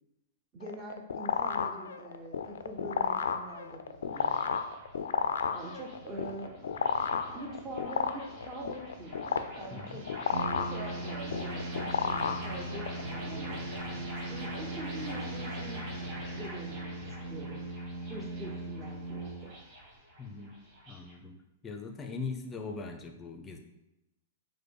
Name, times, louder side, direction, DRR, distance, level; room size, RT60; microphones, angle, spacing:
voice 1, 0.5-4.5 5.5-6.5 7.3-10.0 10.6-13.6 14.3-15.8 16.4-17.0 17.3-17.6 18.0-19.6, right 1 dB, 20° right, 1 dB, 0.8 m, -44 dB
sound 1, 0.6-13.0, left 6 dB, 85° left, 0.3 m, -32 dB
sound 2, 2.2-21.2, equal, 40° right, 1.2 m, -45 dB
voice 2, 9.7-10.0 20.2-20.6 20.9-21.3 21.6-23.6, left 4 dB, 20° left, 5 dB, 0.5 m, -40 dB
Brass instrument, 10.3-19.8, right 2 dB, 70° right, 0.7 m, -39 dB
4.8 x 2.2 x 4.6 m, 0.93 s
hypercardioid pair, 140°, 0 cm